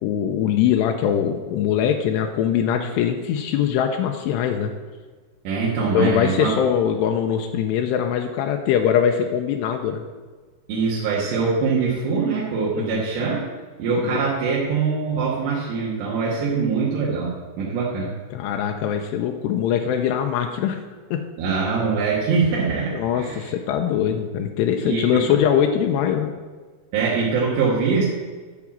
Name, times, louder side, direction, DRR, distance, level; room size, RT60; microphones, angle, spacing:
voice 1, 0.0-4.7 5.9-10.0 12.7-13.0 14.0-14.2 18.3-20.8 21.1-21.2 22.9-26.3, left 9 dB, 85° left, 4 dB, 2.8 m, -22 dB
voice 2, 5.5-6.6 10.7-13.4 13.8-18.1 21.4-23.5 24.8-25.2 26.9-28.1, right 5 dB, 85° right, -6 dB, 3.7 m, -23 dB
12.0 x 4.8 x 7.3 m, 1.4 s
omnidirectional pair, 4.8 m